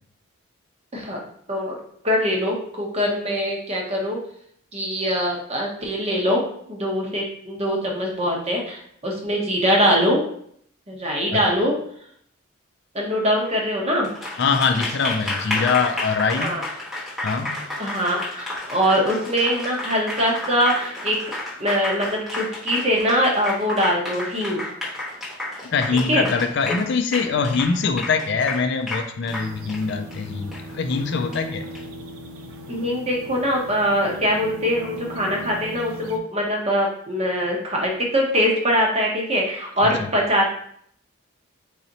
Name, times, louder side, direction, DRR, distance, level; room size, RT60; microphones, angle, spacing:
voice 1, 2.0-4.2 4.7-6.4 6.7-10.2 10.9-11.8 12.9-14.1 16.4-16.6 17.8-21.2 21.6-24.6 26.1-26.3 26.7-26.8 32.7-40.5, equal, 30° right, -1 dB, 0.9 m, -22 dB
Applause, 14.0-31.8, left 2 dB, ahead, 1.0 m, -31 dB
voice 2, 14.4-16.5 17.2-17.6 25.6-31.6 39.8-40.1, left 5 dB, 55° left, 7 dB, 0.4 m, -23 dB
sound 1, 29.3-36.2, equal, 90° right, 0.6 m, -38 dB
4.1 x 3.9 x 2.9 m, 0.66 s
head